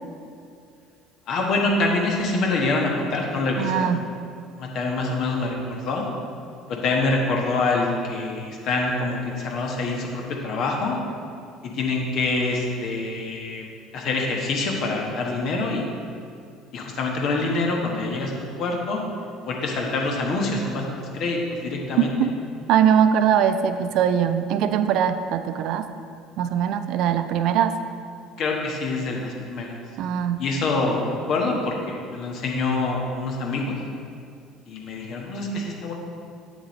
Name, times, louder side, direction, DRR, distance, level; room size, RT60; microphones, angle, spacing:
voice 1, 1.3-3.9 4.6-6.1 6.7-11.0 11.7-13.6 13.9-15.9 16.7-18.3 18.6-19.0 19.5-22.1 28.4-29.8 30.4-33.8 34.7-35.9, left 3 dB, 50° left, 0 dB, 1.3 m, -25 dB
voice 2, 3.6-4.0 22.2-22.3 22.7-25.9 26.4-27.7 30.0-30.4, right 8 dB, 55° right, 10 dB, 0.4 m, -21 dB
8.2 x 7.9 x 3.2 m, 2.4 s
figure-of-eight pair, 60°, 0 cm